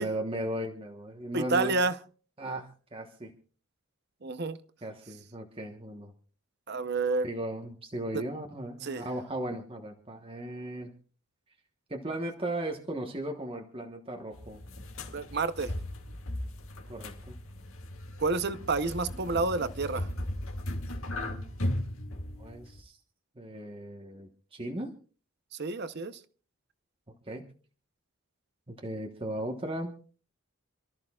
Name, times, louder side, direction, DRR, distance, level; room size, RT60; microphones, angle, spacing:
voice 1, 0.0-1.8 2.4-3.3 4.8-6.1 7.2-10.9 11.9-14.6 16.9-17.4 21.1-21.6 22.4-23.0 23.4-24.9 27.3-27.5 28.7-29.9, right 1 dB, 25° right, 1.2 m, -37 dB
voice 2, 1.3-2.0 4.2-4.6 6.7-7.3 8.1-8.2 8.8-9.0 15.1-15.7 18.2-20.1 25.6-26.2, right 3 dB, 50° right, 0.8 m, -29 dB
sound 1, 14.3-22.8, left 1 dB, 70° left, 2.1 m, -37 dB
27.5 x 13.5 x 2.4 m
head